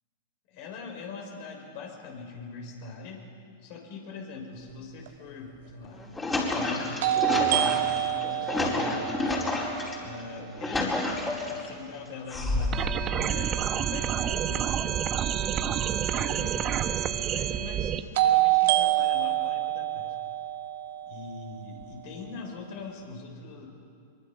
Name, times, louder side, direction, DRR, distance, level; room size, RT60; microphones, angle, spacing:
voice 1, 0.5-3.3 3.6-9.3 10.0-11.0 11.5-14.8 15.2-18.0 18.2-20.1 21.1-23.7, left 4 dB, 55° left, 1 dB, 5.4 m, -42 dB
sound 1, 5.1-5.2 7.0-10.9 18.2-22.2, right 14 dB, 60° right, 1.9 m, -27 dB
sound 2, 5.8-9.9 10.4-11.7 12.3-13.0, left 2 dB, 15° left, 4.6 m, -29 dB
sound 3, 12.7-18.0, right 9 dB, 35° right, 1.1 m, -28 dB
24.0 x 23.0 x 6.1 m, 2.4 s
hypercardioid pair, 100°, 0 cm